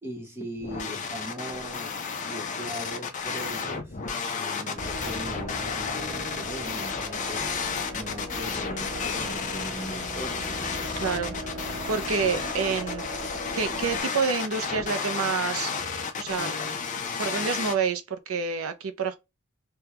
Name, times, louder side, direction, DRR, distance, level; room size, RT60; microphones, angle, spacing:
voice 1, 0.0-4.0 4.4-10.5, equal, 10° right, 1.0 m, -40 dB
sound 1, 0.6-17.7, left 5 dB, 35° left, 0.5 m, -32 dB
sound 2, 4.7-14.0, equal, 90° right, 1.7 m, -38 dB
voice 2, 11.0-11.3 11.9-13.1 13.5-15.7 16.2-16.5 17.2-19.2, right 5 dB, 75° right, 0.5 m, -28 dB
3.4 x 2.2 x 2.9 m
head